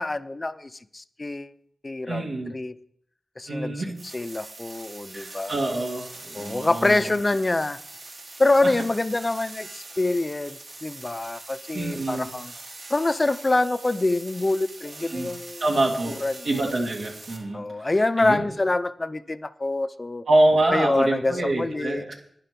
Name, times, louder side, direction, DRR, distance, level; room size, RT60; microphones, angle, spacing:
voice 1, 0.0-1.5 1.8-2.7 3.4-3.8 4.1-5.6 6.3-7.8 8.4-12.5 12.9-15.6 16.2-16.5 17.5-20.2 20.7-22.0, left 2 dB, 25° left, 14 dB, 0.5 m, -25 dB
voice 2, 2.1-2.5 3.5-3.9 5.1-7.1 8.6-8.7 11.7-12.3 15.1-15.3 15.6-16.2 16.4-18.5 20.3-22.1, right 2 dB, 75° right, 0 dB, 2.6 m, -25 dB
sound 1, 3.9-17.4, right 2 dB, 60° right, 3.7 m, -43 dB
10.5 x 10.0 x 5.3 m, 0.67 s
wide cardioid pair, 100°, 0 cm